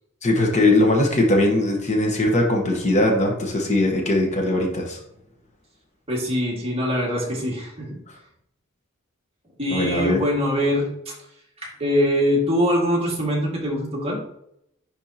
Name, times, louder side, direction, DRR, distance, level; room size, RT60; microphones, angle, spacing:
voice 1, 0.2-5.0 9.7-10.2, left 1 dB, 35° left, 1 dB, 1.1 m, -20 dB
voice 2, 6.1-8.0 9.6-11.1 11.8-14.2, equal, 30° right, -3 dB, 2.0 m, -23 dB
10.5 x 3.6 x 2.9 m, 0.74 s
head